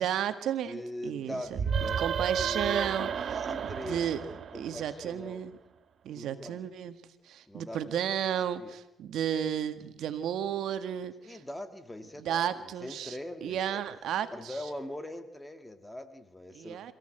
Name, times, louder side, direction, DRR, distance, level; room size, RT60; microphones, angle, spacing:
voice 1, 0.0-3.4 3.8-4.2 4.5-5.6 6.0-7.0 7.2-11.4 12.2-14.7 16.5-16.9, right 9 dB, 80° right, 9 dB, 1.7 m, -33 dB
voice 2, 0.7-2.0 2.4-3.2 3.4-4.0 4.5-5.4 6.1-6.6 7.5-7.8 8.6-8.7 11.3-12.5 12.8-13.8 14.3-16.9, left 1 dB, 10° left, 8 dB, 2.1 m, -41 dB
sound 1, 1.5-5.1, right 7 dB, 55° right, 1.4 m, -32 dB
26.5 x 16.0 x 8.0 m, 0.89 s
cardioid pair, 90°, 0 cm